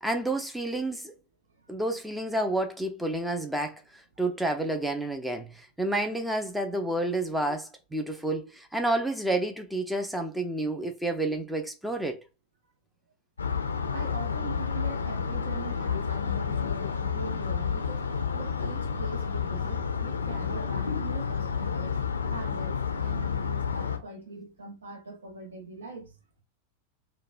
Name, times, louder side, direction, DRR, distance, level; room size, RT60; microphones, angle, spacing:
voice 1, 0.0-1.1 1.7-7.6 7.9-12.2, right 1 dB, 5° right, 0.4 m, -30 dB
sound 1, 13.4-24.0, left 6 dB, 75° left, 0.4 m, -30 dB
voice 2, 13.9-18.1 18.3-22.0 22.3-26.2, right 3 dB, 65° right, 0.7 m, -42 dB
2.9 x 2.1 x 2.5 m
figure-of-eight pair, 90°, 0 cm